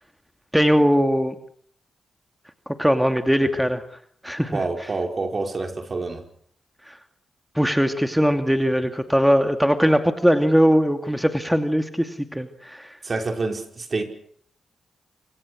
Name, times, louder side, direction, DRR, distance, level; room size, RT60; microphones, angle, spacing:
voice 1, 0.5-1.3 2.7-3.8 4.2-4.6 6.9-7.0 7.5-12.9, equal, 5° right, 2.5 m, -20 dB
voice 2, 4.5-6.2 13.0-14.0, right 3 dB, 45° right, 5.5 m, -27 dB
27.0 x 25.0 x 6.5 m
hypercardioid pair, 40°, 0 cm